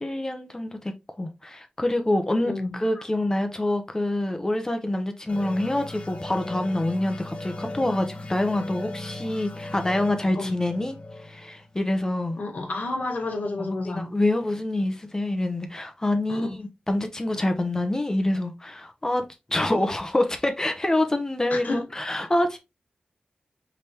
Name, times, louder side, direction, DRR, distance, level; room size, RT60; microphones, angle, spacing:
voice 1, 0.0-0.9 1.2-10.9 11.2-12.4 13.6-22.6, left 1 dB, 20° left, 0.7 m, -26 dB
voice 2, 2.4-3.0 10.3-10.5 12.4-14.1 16.3-16.6 19.6-19.7 21.5-21.9, left 2 dB, 75° left, 1.3 m, -31 dB
sound 1, 5.3-12.6, left 2 dB, 45° left, 1.0 m, -38 dB
4.9 x 3.5 x 2.8 m
wide cardioid pair, 105°, 3 cm